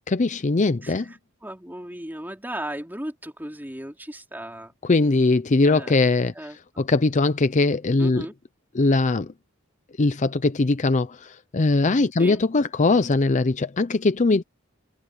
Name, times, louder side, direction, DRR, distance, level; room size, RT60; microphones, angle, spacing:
voice 1, 0.1-1.1 4.8-8.3 8.7-9.3 10.0-14.4, left 3 dB, 35° left, 0.6 m, -21 dB
voice 2, 1.4-4.7 5.6-5.9 6.3-6.8 8.0-8.3 12.2-12.4, right 1 dB, 10° right, 4.2 m, -35 dB
head